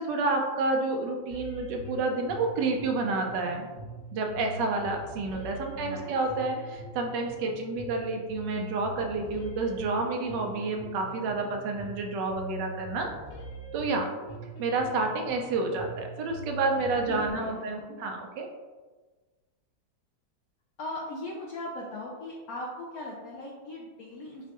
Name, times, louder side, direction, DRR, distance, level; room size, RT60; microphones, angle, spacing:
voice 1, 0.0-3.7 4.1-13.1 13.7-14.1 14.6-18.5, right 3 dB, 75° right, 2 dB, 1.2 m, -29 dB
sound 1, 1.3-17.3, equal, 55° left, 1.2 m, -43 dB
voice 2, 5.8-6.2 17.2-18.1 20.8-24.5, left 1 dB, 70° left, -2 dB, 0.8 m, -39 dB
5.9 x 2.2 x 2.9 m, 1.3 s
omnidirectional pair, 2.0 m